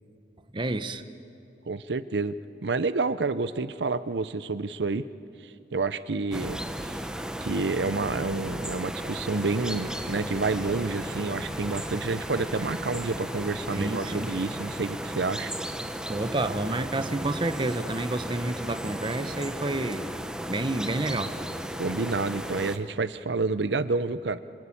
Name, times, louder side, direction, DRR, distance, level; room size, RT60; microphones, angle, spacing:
voice 1, 0.5-1.0 13.7-14.3 16.1-20.2 20.5-21.4, right 2 dB, 30° right, 10 dB, 0.8 m, -29 dB
voice 2, 1.7-2.3 2.6-5.1 5.4-7.0 7.4-15.5 21.8-24.4, right 3 dB, 75° right, 14 dB, 0.7 m, -29 dB
sound 1, 6.3-22.8, equal, 5° right, 1.0 m, -35 dB
sound 2, 9.4-14.7, right 2 dB, 55° right, 5.1 m, -45 dB
27.5 x 25.0 x 8.6 m, 2.8 s
head